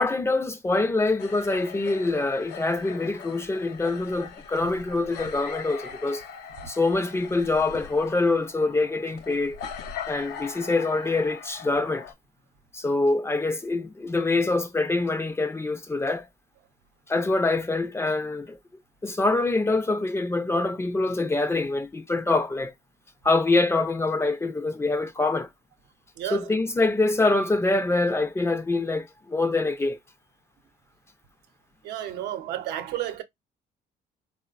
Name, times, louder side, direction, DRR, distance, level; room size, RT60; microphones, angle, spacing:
voice 1, 0.0-6.2 6.7-9.6 10.1-12.1 12.7-16.3 17.1-18.6 19.0-22.7 23.2-25.5 26.3-30.0, left 2 dB, 15° left, 0.4 m, -25 dB
sound 1, 1.2-12.1, left 7 dB, 85° left, 0.6 m, -41 dB
voice 2, 26.2-26.5 31.8-33.2, right 12 dB, 80° right, 0.7 m, -32 dB
3.7 x 2.1 x 2.3 m
cardioid pair, 110°, 17 cm